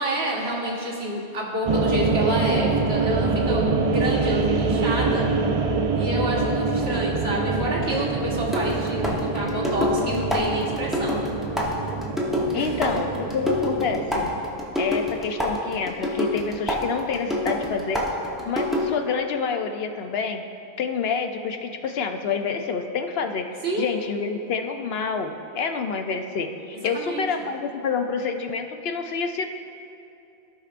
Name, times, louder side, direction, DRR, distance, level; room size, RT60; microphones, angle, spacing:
voice 1, 0.0-5.3 5.9-11.2 12.5-13.0 23.6-23.8 26.9-27.5, right 1 dB, 70° right, -3 dB, 1.6 m, -28 dB
sound 1, 1.7-14.4, right 4 dB, 50° right, 0.4 m, -25 dB
sound 2, 6.8-7.0 8.5-19.1, left 1 dB, ahead, 0.8 m, -27 dB
voice 2, 12.5-14.3 14.8-18.0 18.5-20.4 20.8-23.5 23.8-29.5, left 5 dB, 70° left, 6 dB, 0.8 m, -28 dB
15.5 x 5.6 x 2.5 m, 2.7 s
omnidirectional pair, 1.1 m